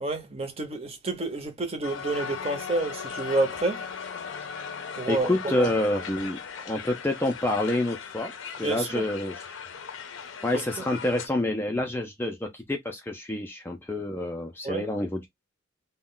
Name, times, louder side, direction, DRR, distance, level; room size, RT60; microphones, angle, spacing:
voice 1, 0.0-3.8 5.0-5.7 8.6-8.9 10.5-10.6 14.6-14.9, right 2 dB, 30° right, 0.7 m, -29 dB
Crowd, 1.8-11.3, left 6 dB, 75° left, 0.5 m, -38 dB
voice 2, 5.1-6.4 6.6-9.6 10.4-15.3, left 1 dB, 10° left, 0.3 m, -28 dB
2.3 x 2.1 x 3.6 m
head